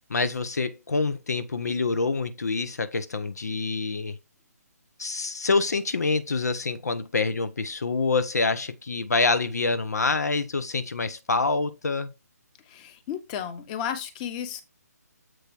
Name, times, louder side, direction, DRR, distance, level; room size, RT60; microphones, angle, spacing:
voice 1, 0.1-4.2 5.0-12.1, left 3 dB, 70° left, 1.0 m, -26 dB
voice 2, 12.7-14.6, left 9 dB, 25° left, 1.3 m, -33 dB
7.9 x 4.7 x 4.5 m
figure-of-eight pair, 145°, 9 cm